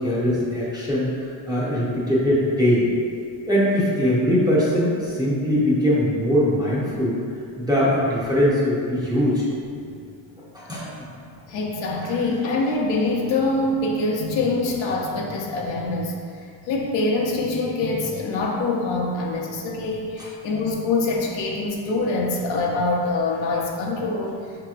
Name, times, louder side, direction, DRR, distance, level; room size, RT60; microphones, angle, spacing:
voice 1, 0.0-2.9 3.5-7.2 7.6-9.4 10.5-10.9 12.0-12.2 20.2-20.3, equal, 10° right, -8 dB, 0.6 m, -21 dB
voice 2, 11.5-24.4, left 3 dB, 75° left, -1 dB, 0.8 m, -24 dB
5.5 x 2.9 x 2.4 m, 2.4 s
cardioid pair, 150°, 46 cm